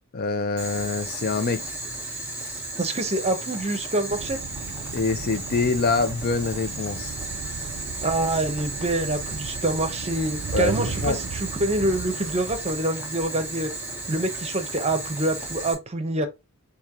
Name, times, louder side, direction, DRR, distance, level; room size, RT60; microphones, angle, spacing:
voice 1, 0.1-1.6 4.9-7.1 10.5-10.7 11.0-11.2, left 4 dB, 45° left, 0.5 m, -25 dB
Boiling, 0.6-15.7, right 2 dB, 10° right, 2.1 m, -34 dB
voice 2, 2.8-4.4 8.0-13.7 14.1-16.3, right 2 dB, 30° right, 0.8 m, -26 dB
sound 1, 4.1-13.2, right 5 dB, 60° right, 0.5 m, -36 dB
4.5 x 2.9 x 3.6 m
head